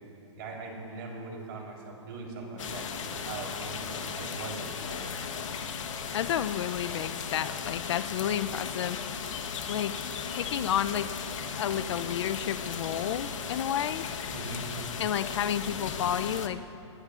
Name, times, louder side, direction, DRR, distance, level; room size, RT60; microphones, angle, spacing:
voice 1, 0.4-5.2 14.3-14.7, right 3 dB, 50° right, -1 dB, 3.7 m, -41 dB
sound 1, 2.6-16.5, left 6 dB, 80° left, 1.1 m, -36 dB
voice 2, 6.1-9.0 9.7-10.0 10.3-11.1 11.6-14.1 15.0-16.6, left 10 dB, 60° left, 12 dB, 0.5 m, -31 dB
29.0 x 11.5 x 2.5 m, 2.9 s
hypercardioid pair, 145°, 16 cm